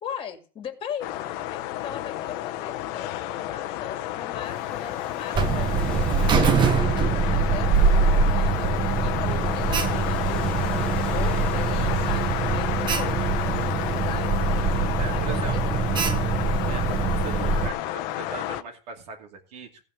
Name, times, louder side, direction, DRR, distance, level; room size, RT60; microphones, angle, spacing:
voice 1, 0.0-6.0 6.4-7.7 8.3-14.3 15.1-15.6, left 8 dB, 25° left, 7 dB, 2.3 m, -39 dB
sound 1, 1.0-18.6, left 14 dB, 45° left, 0.8 m, -31 dB
sound 2, 4.4-14.6, left 2 dB, 5° left, 2.4 m, -44 dB
Alarm, 5.3-17.7, right 4 dB, 20° right, 0.9 m, -23 dB
voice 2, 12.8-13.1 15.0-15.8 16.7-19.7, right 4 dB, 70° right, 1 dB, 2.7 m, -39 dB
14.5 x 4.9 x 7.8 m, 0.38 s
supercardioid pair, 140°, 21 cm